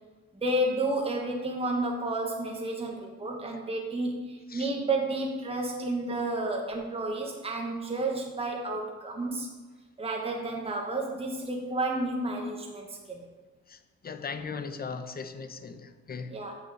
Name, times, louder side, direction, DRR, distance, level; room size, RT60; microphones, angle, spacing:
voice 1, 0.3-9.5 10.0-13.2 16.3-16.5, right 2 dB, 20° right, 1.3 m, -31 dB
voice 2, 13.7-16.3, left 5 dB, 30° left, 0.8 m, -38 dB
6.2 x 6.1 x 6.8 m
cardioid pair, 90°, 30 cm